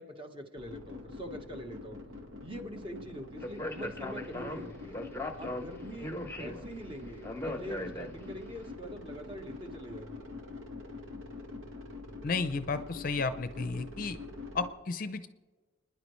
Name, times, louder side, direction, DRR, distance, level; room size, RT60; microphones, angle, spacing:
voice 1, 0.0-2.0 2.4-5.0 5.3-6.1 6.4-10.2, equal, 25° right, 4 dB, 1.3 m, -44 dB
sound 1, 0.6-14.7, left 3 dB, 75° right, 1.9 m, -45 dB
Speech, 3.4-8.5, left 1 dB, 10° left, 0.9 m, -39 dB
voice 2, 12.2-14.2 14.5-15.3, left 4 dB, 40° left, 11 dB, 0.6 m, -33 dB
30.0 x 10.5 x 3.2 m, 1.3 s
head